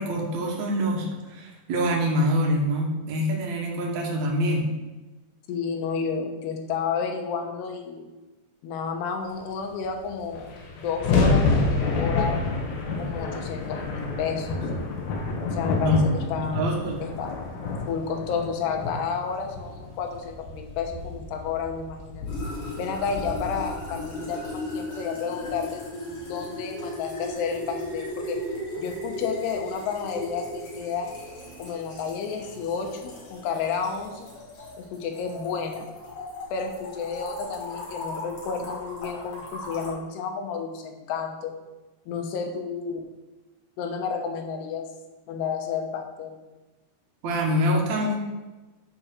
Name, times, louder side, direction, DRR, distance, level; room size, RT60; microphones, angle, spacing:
voice 1, 0.0-4.7 15.8-17.0 47.2-48.2, equal, 55° right, -1 dB, 2.3 m, -25 dB
voice 2, 5.5-8.1 8.6-10.5 10.8-12.4 13.0-14.6 15.5-16.7 17.0-17.4 17.9-22.3 22.8-28.4 28.8-31.1 31.6-34.3 34.8-35.9 36.5-41.5 42.1-43.1 43.8-44.9 45.3-46.4, left 6 dB, 85° left, 3 dB, 3.1 m, -31 dB
sound 1, 9.9-10.0 10.1-24.5, left 3 dB, 65° left, 2.9 m, -29 dB
sound 2, 22.3-39.9, left 1 dB, 40° left, 2.8 m, -37 dB
9.4 x 5.0 x 6.4 m, 1.2 s
omnidirectional pair, 4.8 m